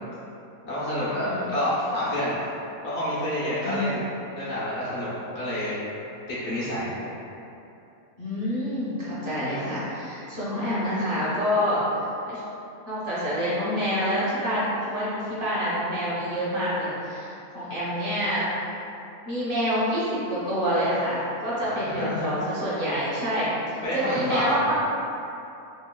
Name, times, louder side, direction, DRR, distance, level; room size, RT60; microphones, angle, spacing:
voice 1, 0.7-2.4 2.8-4.0 4.3-5.8 6.3-7.0 21.6-22.2 23.8-24.6, left 1 dB, 55° left, -9 dB, 1.0 m, -28 dB
voice 2, 3.6-4.0 8.2-11.8 12.3-12.4 12.9-18.5 19.2-24.7, equal, 45° right, -9 dB, 0.9 m, -27 dB
3.4 x 2.9 x 2.2 m, 2.8 s
omnidirectional pair, 1.5 m